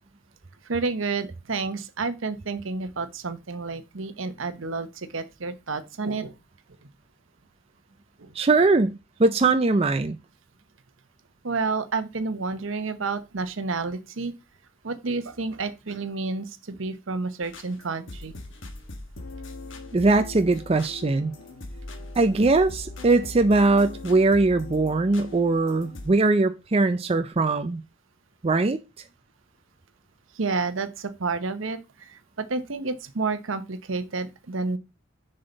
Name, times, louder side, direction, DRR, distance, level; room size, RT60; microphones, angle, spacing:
voice 1, 0.7-6.3 11.4-14.3 14.8-18.3 30.4-31.8 32.4-34.8, right 4 dB, 75° right, 0.9 m, -30 dB
voice 2, 8.4-8.9 9.2-10.2 19.9-21.3 22.2-27.8 28.4-28.8, right 3 dB, 30° right, 0.5 m, -21 dB
sound 1, 17.4-26.1, left 2 dB, 65° left, 1.4 m, -40 dB
6.7 x 5.6 x 4.0 m
head